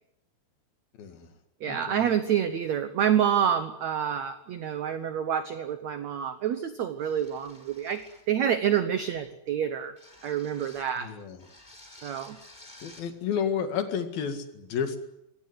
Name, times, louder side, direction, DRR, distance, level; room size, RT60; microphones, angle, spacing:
voice 1, 1.0-1.3 1.7-2.0 11.0-11.5 12.8-15.0, left 7 dB, 65° left, 8 dB, 3.7 m, -31 dB
voice 2, 1.6-8.0 8.3-9.9 10.2-11.1 12.0-12.4, right 9 dB, 85° right, 10 dB, 1.5 m, -27 dB
sound 1, 7.0-8.4 9.0-9.3 10.0-11.0 11.4-13.1, left 1 dB, 10° left, 3.5 m, -52 dB
24.5 x 17.0 x 9.6 m, 0.84 s
omnidirectional pair, 4.8 m